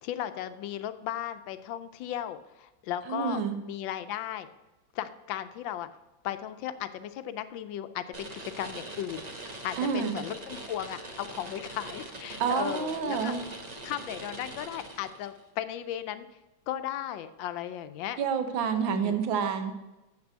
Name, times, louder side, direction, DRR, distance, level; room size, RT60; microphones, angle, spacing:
voice 1, 0.0-4.5 4.9-5.9 6.2-8.3 8.6-9.2 9.6-13.3 13.8-16.3 16.7-18.2 18.9-19.2, left 11 dB, 80° left, 12 dB, 1.3 m, -36 dB
voice 2, 3.1-3.6 9.8-10.2 12.4-13.4 18.2-19.7, right 6 dB, 80° right, 7 dB, 1.7 m, -28 dB
sound 1, 8.1-15.4, right 2 dB, 35° right, 0.7 m, -42 dB
7.3 x 6.0 x 7.5 m, 1.0 s
omnidirectional pair, 2.1 m